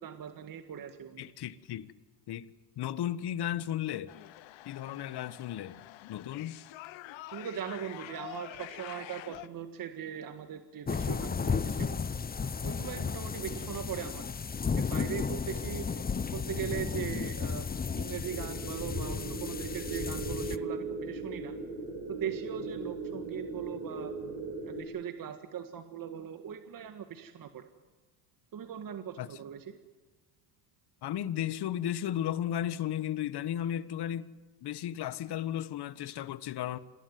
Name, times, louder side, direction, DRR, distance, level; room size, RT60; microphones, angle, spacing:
voice 1, 0.0-1.3 7.3-12.1 12.6-14.2 14.8-15.9 16.3-17.7 17.9-21.5 22.1-24.1 24.6-27.6 28.5-29.8, right 9 dB, 45° right, 1.9 m, -40 dB
voice 2, 1.2-1.9 2.3-4.1 4.6-6.6 29.2-29.3 31.0-34.3 34.6-36.8, left 11 dB, 55° left, 1.5 m, -35 dB
sound 1, 4.1-9.5, left 17 dB, 70° left, 1.2 m, -46 dB
sound 2, 10.9-20.6, left 5 dB, 20° left, 0.9 m, -34 dB
sound 3, 18.2-24.8, right 3 dB, 90° right, 7.3 m, -38 dB
26.5 x 19.5 x 9.5 m
cardioid pair, 100°, 48 cm